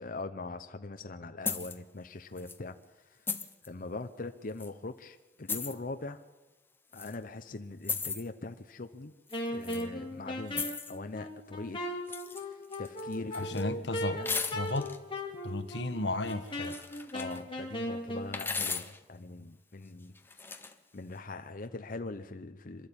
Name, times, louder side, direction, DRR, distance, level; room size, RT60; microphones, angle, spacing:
voice 1, 0.0-2.7 3.0-3.2 3.6-6.2 6.9-9.1 9.5-11.8 12.3-14.4 17.1-20.6 20.9-22.9, left 3 dB, 50° left, 7 dB, 0.8 m, -42 dB
sound 1, 1.5-1.8 2.4-2.6 3.3-3.7 4.6-4.7 5.5-5.7 6.9-7.1 7.8-8.2 9.3-9.8 10.5-11.0 12.1-12.4 12.7-13.6 14.2-15.0 16.3-17.4 18.3-19.0 20.2-20.7, left 4 dB, 15° left, 1.1 m, -36 dB
Wind instrument woodwind instrument, 9.3-18.3, left 1 dB, 30° left, 2.6 m, -38 dB
voice 2, 13.3-14.2 14.5-14.9 15.4-16.8, left 2 dB, 80° left, 9 dB, 1.4 m, -33 dB
26.5 x 12.0 x 8.7 m, 1.2 s
head